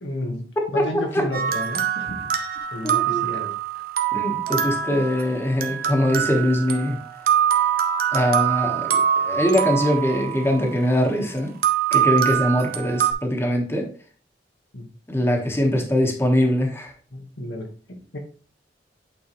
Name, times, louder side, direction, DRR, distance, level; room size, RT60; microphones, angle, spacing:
voice 1, 0.0-2.3 2.7-3.8 4.9-5.0 14.7-14.9 17.1-18.2, left 1 dB, 90° left, 3 dB, 1.4 m, -32 dB
sound 1, 1.3-11.0 11.6-13.1, right 9 dB, 55° right, 0.7 m, -24 dB
voice 2, 2.8-3.2 4.1-7.0 8.1-11.5 11.9-13.9 15.1-16.9, left 1 dB, 15° left, 2 dB, 1.3 m, -22 dB
8.4 x 4.4 x 3.1 m, 0.40 s
head